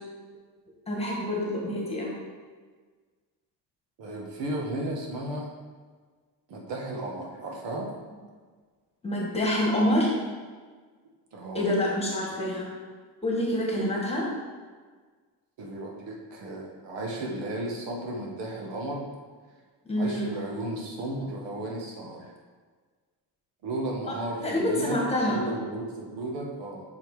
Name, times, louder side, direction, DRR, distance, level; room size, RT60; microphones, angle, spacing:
voice 1, 0.9-2.2 9.0-10.1 11.5-12.7 13.2-14.2 19.8-20.3 24.4-25.4, left 1 dB, 15° left, -3 dB, 1.6 m, -26 dB
voice 2, 4.0-5.5 6.5-7.9 11.3-11.7 15.6-19.1 20.0-22.3 23.6-25.0 25.2-26.8, right 1 dB, 75° right, 0 dB, 1.5 m, -34 dB
5.7 x 5.2 x 4.8 m, 1.5 s
cardioid pair, 135°, 43 cm